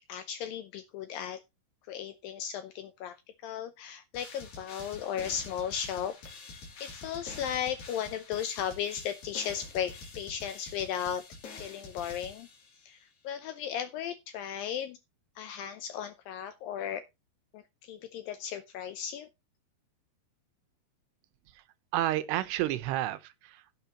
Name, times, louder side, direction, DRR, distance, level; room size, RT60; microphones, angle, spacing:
voice 1, 0.1-1.4 1.9-3.2 3.4-6.2 6.8-11.2 11.5-12.5 12.8-13.0 13.2-15.0 15.4-17.0 17.5-19.3, left 9 dB, 80° left, 2.1 m, -35 dB
sound 1, 4.1-13.0, left 3 dB, 55° left, 4.6 m, -47 dB
voice 2, 21.9-23.8, right 14 dB, 85° right, 3.0 m, -31 dB
16.5 x 7.6 x 2.9 m
omnidirectional pair, 4.7 m